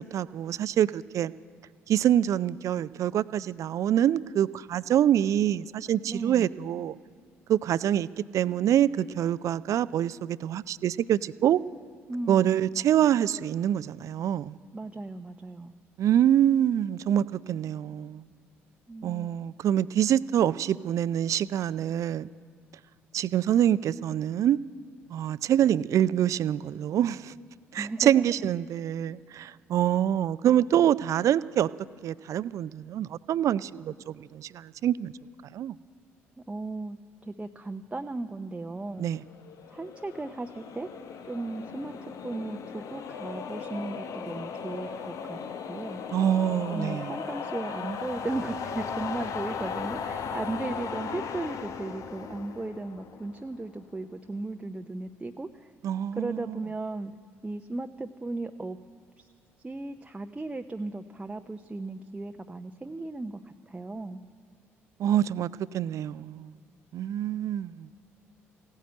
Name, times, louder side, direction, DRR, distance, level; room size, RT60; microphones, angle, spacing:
voice 1, 0.0-1.3 1.9-6.9 7.5-11.6 12.3-14.6 16.0-18.2 19.0-22.3 23.1-24.6 25.1-27.3 27.7-31.7 32.0-35.1 35.5-35.8 39.0-39.2 46.1-47.2 55.8-56.6 65.0-66.5 66.9-67.9, right 10 dB, 50° right, 18 dB, 0.4 m, -25 dB
voice 2, 6.0-6.5 12.1-12.7 14.7-15.7 18.9-19.3 27.8-28.2 36.4-37.0 37.2-39.1 39.7-40.9 41.2-45.4 45.7-46.0 46.7-55.7 56.2-57.1 57.4-58.8 59.2-59.3 59.6-63.4 63.7-64.2, right 2 dB, 15° right, 6 dB, 0.7 m, -36 dB
sound 1, 39.3-53.6, left 6 dB, 50° left, 0.9 m, -37 dB
16.5 x 9.2 x 9.2 m, 2.2 s
figure-of-eight pair, 50°, 7 cm